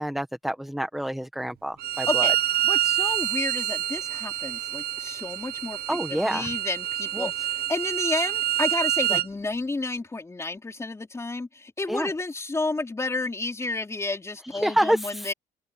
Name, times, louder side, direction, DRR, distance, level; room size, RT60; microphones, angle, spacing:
voice 1, 0.0-2.3 5.9-6.5 7.1-7.3 11.9-12.1 14.4-15.3, right 1 dB, ahead, 1.6 m, -27 dB
Bowed string instrument, 1.8-9.3, right 12 dB, 70° right, 0.8 m, -27 dB
voice 2, 2.6-15.3, left 3 dB, 15° left, 3.7 m, -31 dB
open air
cardioid pair, 110°, 17 cm